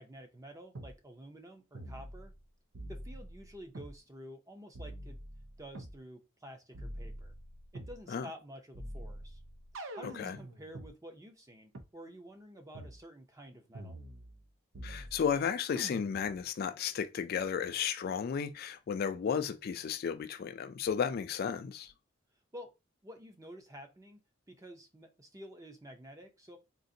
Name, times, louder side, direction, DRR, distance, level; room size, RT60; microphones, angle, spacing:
voice 1, 0.0-2.3 2.9-5.2 5.6-7.3 7.7-9.4 9.9-14.0 22.5-22.7 23.0-24.2 24.5-26.6, equal, 15° right, 0.5 m, -50 dB
sound 1, 0.7-0.9 1.7-2.4 2.7-3.9 4.7-6.0 6.7-8.0 8.7-10.9 11.7-11.8 12.7-13.0 13.7-14.4 14.7-15.4 15.7-16.4, right 1 dB, 90° right, 0.6 m, -45 dB
voice 2, 10.0-10.4 14.8-21.9, left 7 dB, 50° left, 0.3 m, -33 dB
3.8 x 2.5 x 2.6 m
head